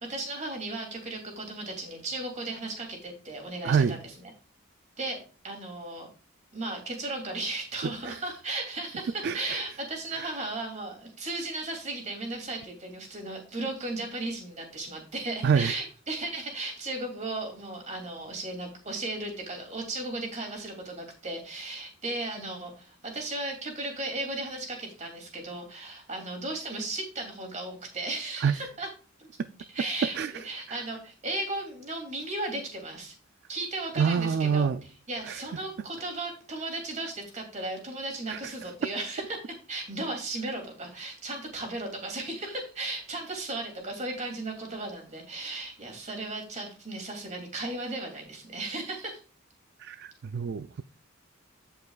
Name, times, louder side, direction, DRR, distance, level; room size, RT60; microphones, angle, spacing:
voice 1, 0.0-4.1 5.0-6.1 6.5-28.9 29.7-33.1 33.5-34.7 35.1-49.2, right 2 dB, 35° right, 2.7 m, -35 dB
voice 2, 3.6-4.0 8.0-8.2 9.2-9.6 10.1-10.3 15.4-15.7 28.4-28.6 30.2-30.3 30.7-30.8 34.0-34.8 35.2-35.4 38.3-38.5 49.8-50.8, right 6 dB, 55° right, 0.3 m, -27 dB
15.5 x 5.4 x 2.4 m
head